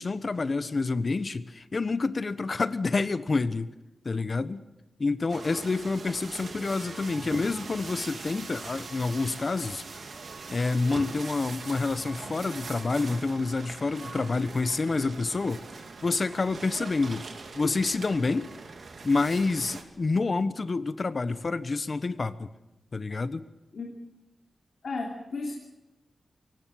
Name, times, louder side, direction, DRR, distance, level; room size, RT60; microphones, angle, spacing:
voice 1, 0.0-3.7 4.0-4.6 5.0-9.8 10.5-15.6 16.0-17.2 17.5-18.5 19.0-22.5 22.9-23.4, left 3 dB, 40° left, 13 dB, 1.1 m, -28 dB
sound 1, 5.3-19.8, right 4 dB, 65° right, 2.9 m, -42 dB
voice 2, 24.8-25.5, left 3 dB, 70° left, 1 dB, 3.1 m, -33 dB
24.0 x 18.5 x 7.8 m, 0.97 s
wide cardioid pair, 115°, 0 cm